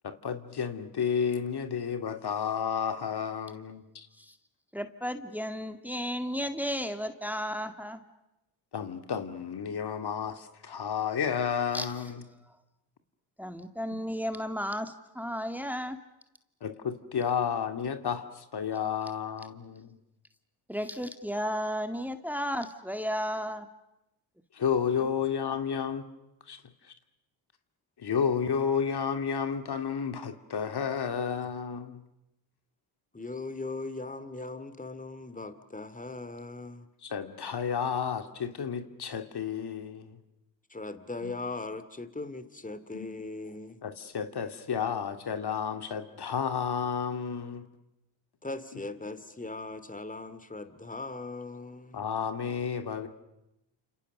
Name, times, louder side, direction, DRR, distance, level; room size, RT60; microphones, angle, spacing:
voice 1, 0.0-4.1 8.7-12.2 13.9-14.0 16.6-20.0 24.5-26.1 26.5-26.6 28.0-32.0 37.0-40.2 41.2-41.3 42.9-43.1 43.8-47.7 51.9-53.1, left 7 dB, 50° left, 2.5 m, -31 dB
voice 2, 4.7-8.0 11.7-11.9 13.4-16.0 20.7-23.7, equal, 5° right, 2.1 m, -33 dB
voice 3, 33.1-36.9 40.7-43.8 48.4-52.0, left 3 dB, 15° left, 2.6 m, -39 dB
29.0 x 28.0 x 6.7 m
supercardioid pair, 65°, 49 cm